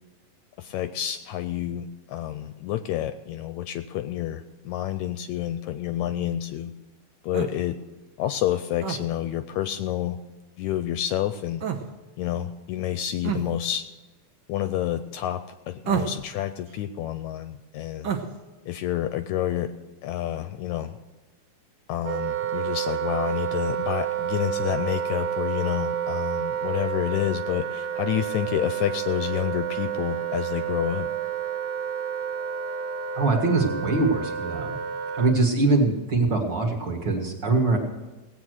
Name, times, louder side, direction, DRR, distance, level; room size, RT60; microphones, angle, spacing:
voice 1, 0.6-6.7 7.2-7.8 8.2-10.2 10.6-11.6 12.2-13.8 14.5-18.1 18.7-19.7 20.0-21.0 21.9-31.1, left 12 dB, 80° left, 10 dB, 1.8 m, -29 dB
sound 1, 7.3-7.6 8.8-9.0 11.6-11.9 13.2-13.4 15.9-16.2 18.0-18.3, right 7 dB, 70° right, 1.0 m, -27 dB
Wind instrument woodwind instrument, 22.0-35.4, right 9 dB, 90° right, 2.8 m, -30 dB
voice 2, 33.1-34.8 35.1-37.8, right 3 dB, 40° right, 0 dB, 2.0 m, -23 dB
17.5 x 8.6 x 6.3 m, 1.2 s
omnidirectional pair, 3.6 m